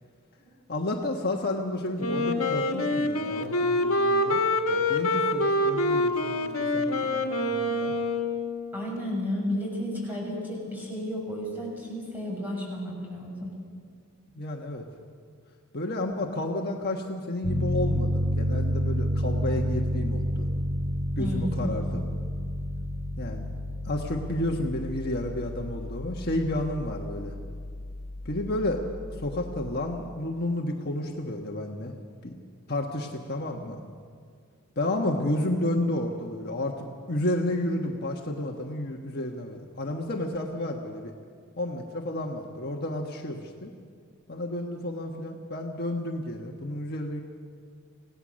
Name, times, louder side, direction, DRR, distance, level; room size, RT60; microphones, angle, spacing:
voice 1, 0.7-4.4 4.7-7.9 14.3-14.8 15.7-20.5 21.2-22.0 23.2-23.5 23.8-27.3 28.2-28.8 29.2-31.9 32.2-32.3 32.7-33.8 34.8-41.1 41.6-43.7 44.3-47.2, left 1 dB, 45° left, 1 dB, 1.4 m, -31 dB
Wind instrument woodwind instrument, 2.0-8.7, left 1 dB, 70° left, 1.8 m, -26 dB
voice 2, 8.7-13.5 21.2-21.9, left 1 dB, 10° right, -3 dB, 6.4 m, -32 dB
Piano, 17.4-29.6, equal, 30° right, 3.7 m, -30 dB
26.5 x 17.5 x 6.4 m, 2.1 s
head